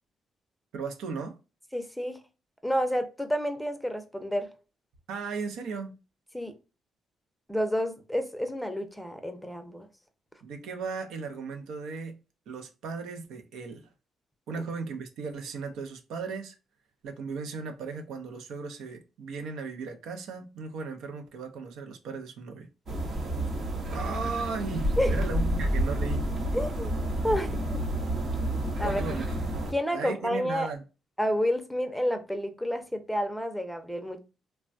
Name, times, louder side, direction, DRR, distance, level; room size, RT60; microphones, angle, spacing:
voice 1, 0.7-1.4 5.1-5.9 10.4-12.2 12.5-13.9 14.5-16.5 17.0-22.7 23.9-26.2 28.8-29.3 29.9-30.8, right 4 dB, 85° right, 0.5 m, -36 dB
voice 2, 1.7-2.2 2.6-4.5 6.3-6.6 7.5-9.9 14.5-14.6 25.0-25.2 26.5-26.9 27.2-27.8 28.8-29.0 29.7-30.7 31.2-34.2, equal, ahead, 0.5 m, -30 dB
sound 1, 22.9-29.7, right 1 dB, 55° right, 0.7 m, -29 dB
3.2 x 2.2 x 2.5 m
cardioid pair, 90°, 0 cm